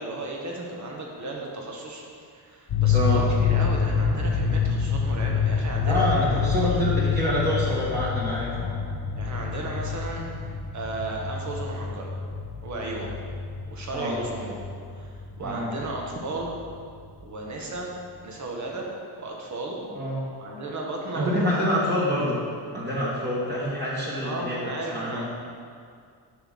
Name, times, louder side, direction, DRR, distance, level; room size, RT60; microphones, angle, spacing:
voice 1, 0.0-2.0 2.3-6.0 6.6-6.7 9.2-10.3 10.7-12.1 12.6-13.1 13.7-14.6 14.9-16.6 17.2-17.9 18.2-18.9 19.2-19.8 20.4-21.6 24.2-25.2, right 2 dB, 45° right, -1 dB, 1.6 m, -34 dB
sound 1, 2.7-17.6, left 6 dB, 55° left, 1.1 m, -27 dB
voice 2, 2.9-3.2 5.8-8.8 13.9-14.2 15.4-15.7 19.9-20.3 21.1-22.4 22.7-25.2, left 1 dB, 25° right, -8 dB, 1.8 m, -26 dB
9.3 x 6.1 x 3.7 m, 2.2 s
cardioid pair, 110°, 41 cm